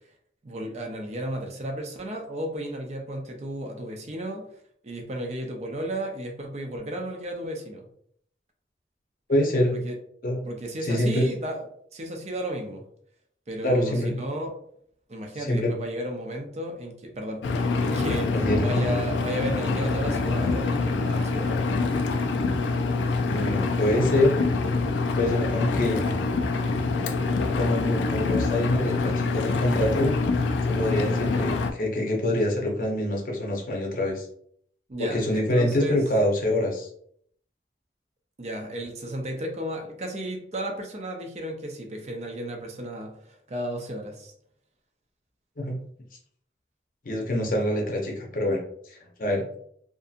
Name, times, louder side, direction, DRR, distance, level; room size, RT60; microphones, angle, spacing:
voice 1, 0.4-4.5 4.8-7.9 9.7-10.0 10.4-12.9 13.5-14.5 15.1-21.5 30.9-31.4 34.9-36.0 38.4-44.3, right 1 dB, 40° right, 2 dB, 0.4 m, -34 dB
voice 2, 9.3-9.7 10.2-10.4 10.8-11.3 13.6-14.1 15.4-15.7 18.3-19.0 23.2-24.3 25.1-26.0 27.6-34.3 35.0-36.9 45.6-45.8 47.0-48.6 48.9-49.4, left 1 dB, 50° left, 0 dB, 0.6 m, -25 dB
Engine, 17.4-31.7, left 3 dB, 85° left, 0.3 m, -25 dB
2.6 x 2.5 x 2.4 m, 0.65 s
head